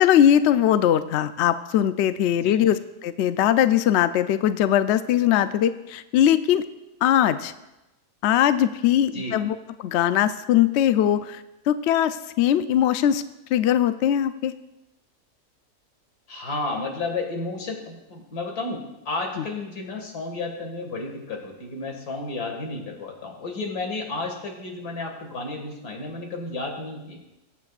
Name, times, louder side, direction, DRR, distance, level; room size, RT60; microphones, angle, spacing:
voice 1, 0.0-6.6 7.0-7.5 8.2-13.2 13.5-14.5 19.4-19.5, left 10 dB, 70° left, 12 dB, 0.6 m, -21 dB
voice 2, 16.3-27.2, left 3 dB, 90° left, 1 dB, 2.4 m, -32 dB
21.5 x 8.4 x 2.4 m, 0.95 s
omnidirectional pair, 1.6 m